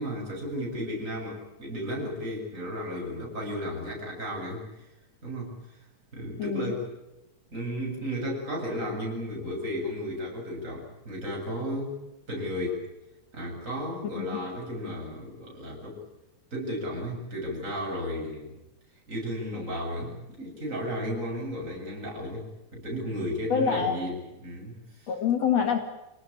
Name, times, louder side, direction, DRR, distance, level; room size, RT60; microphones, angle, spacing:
voice 1, 0.0-4.9 5.2-5.5 6.1-6.9 7.5-12.0 12.3-12.8 13.3-16.0 16.5-18.5 19.1-25.1, equal, 25° right, -1 dB, 8.1 m, -34 dB
voice 2, 6.4-6.7 14.1-14.4 23.5-24.1 25.1-25.8, left 7 dB, 60° left, 5 dB, 3.2 m, -26 dB
27.0 x 19.0 x 8.9 m, 0.96 s
omnidirectional pair, 3.5 m